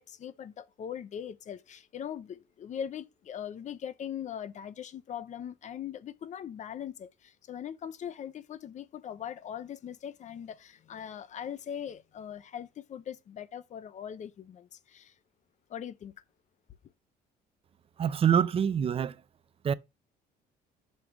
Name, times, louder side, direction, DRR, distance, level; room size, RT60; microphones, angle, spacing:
voice 1, 0.0-15.1 15.7-16.1, left 9 dB, 45° left, 0.6 m, -40 dB
voice 2, 18.0-19.2 19.6-19.7, right 8 dB, 35° right, 0.5 m, -25 dB
5.3 x 4.8 x 6.1 m
cardioid pair, 110°, 17 cm